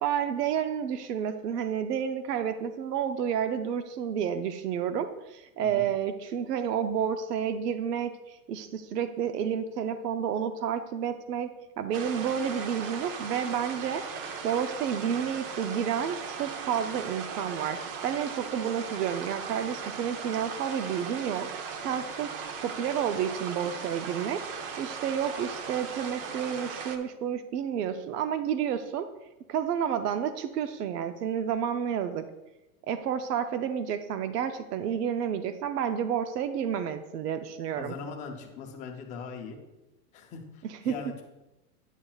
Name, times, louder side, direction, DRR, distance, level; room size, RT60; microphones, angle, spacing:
voice 1, 0.0-14.0 14.4-21.5 21.8-22.3 22.6-29.1 29.5-32.3 32.9-37.9 40.9-41.0, right 8 dB, 85° right, 10 dB, 0.7 m, -30 dB
sound 1, 11.9-27.0, right 6 dB, 35° right, 0.6 m, -38 dB
voice 2, 37.8-39.6 40.1-41.2, left 5 dB, 15° left, 2 dB, 0.5 m, -40 dB
9.9 x 7.3 x 2.4 m, 0.98 s
supercardioid pair, 155°, 46 cm